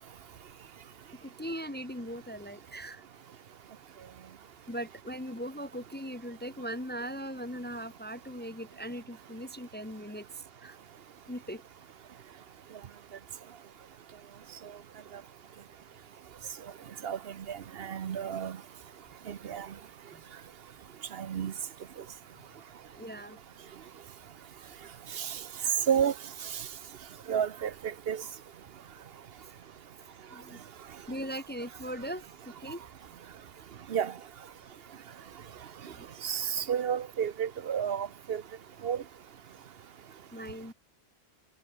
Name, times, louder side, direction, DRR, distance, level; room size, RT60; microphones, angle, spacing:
voice 1, 1.2-3.0 4.7-10.8 11.3-11.6 20.1-20.2 22.9-23.4 30.3-30.6 31.1-32.8 35.9-36.0 40.3-40.7, equal, 10° left, 1.2 m, -39 dB
voice 2, 17.5-18.5 19.3-19.7 21.2-21.5 25.2-25.3 25.9-26.1 27.3-27.7 28.1-28.2 33.9-34.1 36.2-38.4 38.8-39.0, right 8 dB, 70° right, 1.0 m, -30 dB
omnidirectional pair, 1.1 m